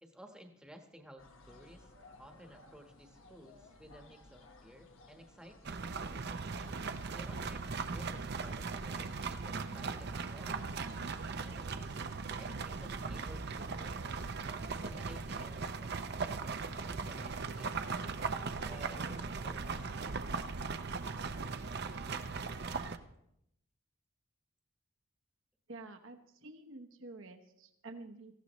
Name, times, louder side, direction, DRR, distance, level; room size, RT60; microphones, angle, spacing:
voice 1, 0.0-1.9 2.2-5.8 7.1-10.7 11.4-12.0 12.4-14.1 14.8-17.7 18.6-20.1, equal, 5° right, 4 dB, 1.2 m, -55 dB
sound 1, 1.2-7.8, left 2 dB, 70° left, 1.3 m, -59 dB
sound 2, 5.6-23.0, right 4 dB, 50° right, 0.6 m, -39 dB
voice 2, 25.7-28.3, right 2 dB, 65° right, 4 dB, 1.1 m, -49 dB
18.0 x 14.5 x 3.1 m, 0.77 s
head